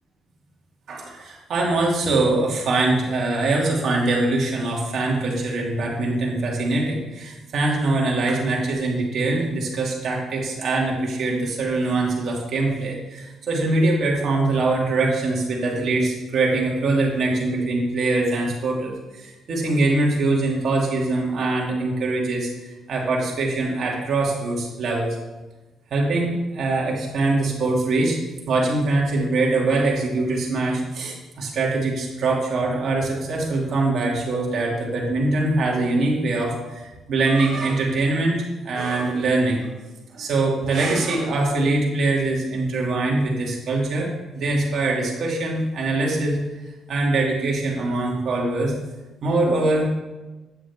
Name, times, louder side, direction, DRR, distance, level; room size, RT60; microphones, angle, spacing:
voice 1, 0.9-25.1 25.9-28.2 28.5-39.7 40.1-46.4 46.9-48.7 49.2-49.9, right 2 dB, 60° right, -2 dB, 2.4 m, -23 dB
9.0 x 7.5 x 3.6 m, 1.1 s
cardioid pair, 90°, 0 cm